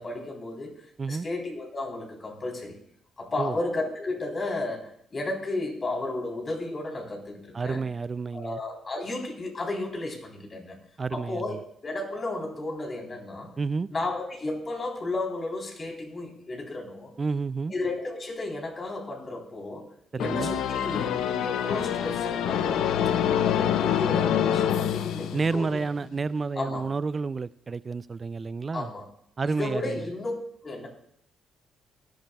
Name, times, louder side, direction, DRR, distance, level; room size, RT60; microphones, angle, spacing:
voice 1, 0.0-2.8 3.2-7.8 8.3-10.8 11.1-13.5 13.9-17.1 17.7-19.9 20.2-22.9 23.4-25.8 26.6-26.9 28.7-29.1 29.4-30.4 30.6-30.9, left 2 dB, 35° left, 1 dB, 3.6 m, -33 dB
voice 2, 7.5-8.6 11.0-11.6 13.6-13.9 17.2-17.7 20.1-20.5 25.3-28.9 29.4-30.1, right 4 dB, 35° right, 18 dB, 0.3 m, -30 dB
sound 1, 20.2-25.8, left 9 dB, 85° left, 0.6 m, -26 dB
18.5 x 11.5 x 2.3 m, 0.68 s
cardioid pair, 90°, 0 cm